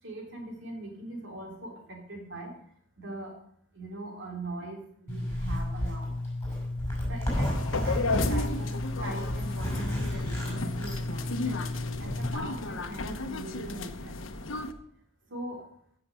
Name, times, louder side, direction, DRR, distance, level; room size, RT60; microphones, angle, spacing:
voice 1, 0.0-2.6 3.0-3.4 3.7-6.2 6.8-7.5 7.8-8.7 9.0-14.5 15.3-15.7, right 2 dB, 65° right, 1 dB, 3.5 m, -41 dB
Zipper (clothing), 5.1-12.4, left 1 dB, 15° left, 5.8 m, -32 dB
sound 1, 7.3-14.7, left 2 dB, 75° left, 1.0 m, -34 dB
14.5 x 6.8 x 6.3 m, 0.67 s
head